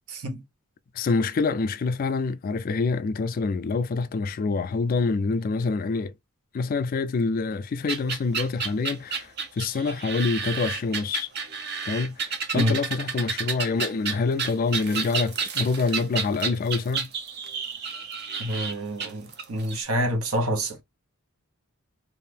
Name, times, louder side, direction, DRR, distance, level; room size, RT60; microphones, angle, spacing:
voice 1, 0.1-0.4 12.5-12.8 18.4-20.8, equal, 85° right, 1.0 m, -27 dB
voice 2, 1.0-6.1 6.5-9.3 9.6-11.3 11.8-17.1, left 4 dB, 40° left, 0.3 m, -26 dB
sound 1, 7.9-19.8, right 5 dB, 50° right, 0.6 m, -31 dB
2.8 x 2.5 x 3.3 m
head